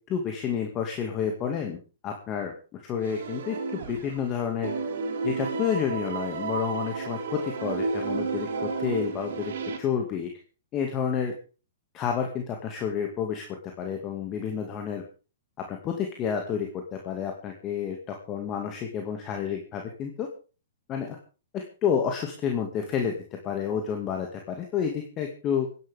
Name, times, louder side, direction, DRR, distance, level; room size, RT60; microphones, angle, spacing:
voice 1, 0.1-1.8 2.0-4.7 5.2-10.3 10.7-11.3 11.9-13.5 13.8-15.0 15.7-20.3 20.9-21.2 21.5-25.7, left 7 dB, 30° left, 3 dB, 2.3 m, -30 dB
sound 1, 3.0-4.3 4.6-9.8, right 4 dB, 70° right, 3.8 m, -32 dB
26.0 x 11.0 x 3.7 m, 0.36 s
hypercardioid pair, 140°, 0 cm